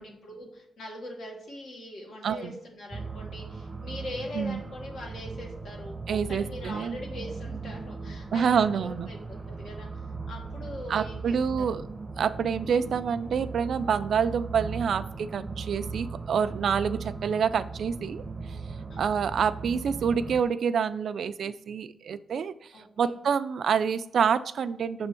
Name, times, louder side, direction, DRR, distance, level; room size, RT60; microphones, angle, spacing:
voice 1, 0.0-10.0 10.3-11.7 18.9-19.2 22.7-23.1, left 1 dB, 85° left, 0 dB, 1.7 m, -42 dB
voice 2, 2.2-2.6 4.3-4.6 6.1-7.0 8.3-9.1 10.9-11.9 12.2-18.6 19.0-22.5 23.0-25.1, right 7 dB, 65° right, 13 dB, 0.3 m, -27 dB
sound 1, 2.9-20.4, right 4 dB, 20° right, 0.6 m, -38 dB
6.7 x 3.5 x 4.4 m, 0.77 s
wide cardioid pair, 125°, 0 cm